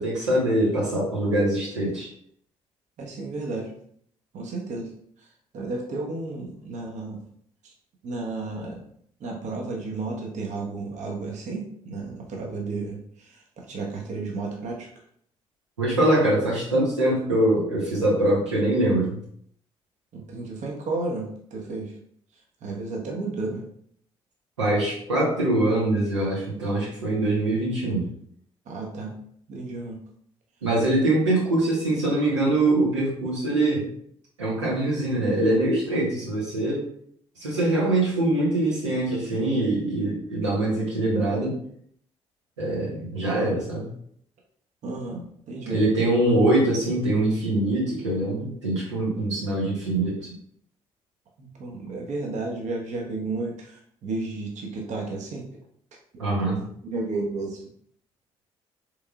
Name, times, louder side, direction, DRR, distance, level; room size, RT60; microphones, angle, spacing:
voice 1, 0.0-2.1 15.8-19.2 24.6-28.1 30.6-33.9 34.4-36.9 37.4-41.6 42.6-43.9 45.7-50.2 56.2-56.6, right 1 dB, 85° right, -6 dB, 0.8 m, -23 dB
voice 2, 3.0-3.7 4.3-4.9 5.5-7.2 7.6-7.7 8.0-8.8 9.2-14.9 20.1-21.9 22.6-23.7 28.7-29.1 29.5-30.0 44.8-45.8 51.4-55.5 56.3-57.6, right 3 dB, 55° right, 0 dB, 0.8 m, -32 dB
3.5 x 3.1 x 2.3 m, 0.64 s
figure-of-eight pair, 45°, 15 cm